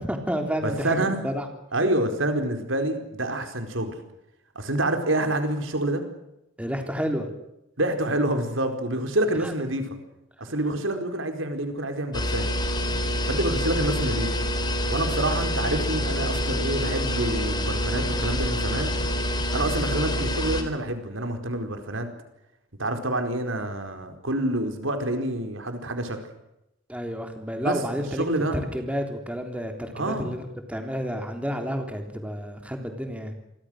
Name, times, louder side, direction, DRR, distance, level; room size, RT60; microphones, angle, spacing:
voice 1, 0.0-1.5 6.6-7.3 9.4-9.5 26.9-28.3 28.5-33.3, equal, 5° right, 4 dB, 3.5 m, -30 dB
voice 2, 0.6-1.2 1.7-4.0 4.5-6.0 7.8-9.9 10.4-12.5 13.3-14.3 14.9-19.0 19.5-22.1 22.8-26.2 27.6-27.8 28.2-28.6 29.9-30.3, right 1 dB, 85° right, 6 dB, 4.6 m, -27 dB
noisy ceiling fan, 12.1-20.6, left 1 dB, 20° left, 3.9 m, -26 dB
28.0 x 23.0 x 6.5 m, 0.86 s
head